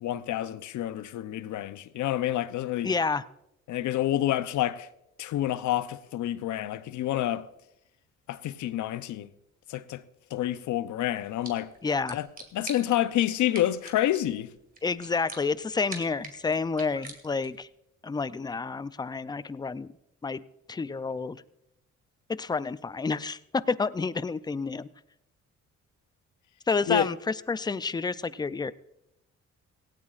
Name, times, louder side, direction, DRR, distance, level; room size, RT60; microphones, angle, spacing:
voice 1, 0.0-2.9 3.7-4.9 5.2-7.4 8.3-9.3 9.7-10.0 10.3-11.7 12.1-12.3 12.5-14.5 26.9-27.1, left 12 dB, 75° left, 0.7 m, -28 dB
voice 2, 2.8-3.3 11.8-12.2 14.8-17.7 18.0-19.9 20.2-20.4 20.7-21.4 22.3-24.9 26.7-28.7, left 4 dB, 15° left, 0.4 m, -29 dB
sound 1, 11.2-17.7, right 3 dB, 30° right, 2.4 m, -46 dB
17.5 x 17.0 x 2.5 m
cardioid pair, 90°, 30 cm